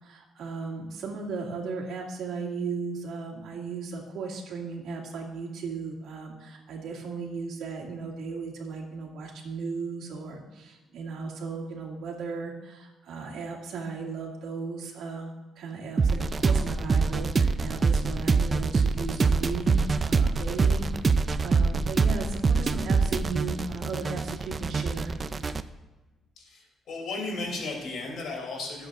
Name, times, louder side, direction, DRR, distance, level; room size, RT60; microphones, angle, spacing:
voice 1, 0.0-25.1, right 4 dB, 75° right, -2 dB, 2.3 m, -36 dB
sound 1, 16.0-25.6, right 4 dB, 30° right, 0.4 m, -25 dB
voice 2, 26.4-28.9, left 3 dB, 65° left, 0 dB, 3.2 m, -35 dB
19.5 x 7.8 x 2.6 m, 1.2 s
cardioid pair, 120°, 0 cm